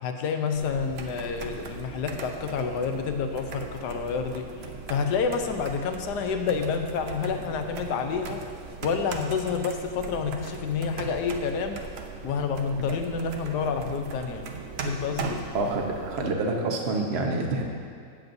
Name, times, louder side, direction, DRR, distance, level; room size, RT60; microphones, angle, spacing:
voice 1, 0.0-8.4 8.8-11.8 12.2-14.5 14.8-15.5, left 5 dB, 70° left, 6 dB, 1.3 m, -29 dB
sound 1, 0.5-16.3, right 4 dB, 60° right, 0.6 m, -39 dB
voice 2, 15.5-17.6, right 2 dB, 40° right, 1 dB, 1.1 m, -27 dB
17.5 x 7.4 x 2.7 m, 2.3 s
omnidirectional pair, 2.0 m